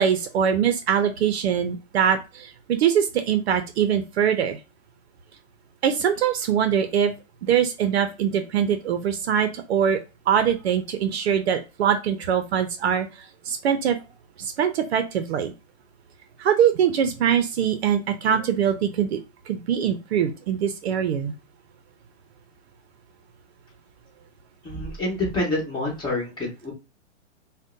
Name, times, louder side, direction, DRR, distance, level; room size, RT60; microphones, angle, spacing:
voice 1, 0.0-4.6 5.8-7.1 7.4-10.0 10.3-13.1 13.5-14.0 14.4-15.5 16.4-19.2 19.5-21.3, right 8 dB, 55° right, 8 dB, 0.6 m, -23 dB
voice 2, 24.6-26.7, left 2 dB, 10° left, -3 dB, 1.4 m, -27 dB
5.1 x 2.2 x 2.6 m, 0.29 s
hypercardioid pair, 145°, 38 cm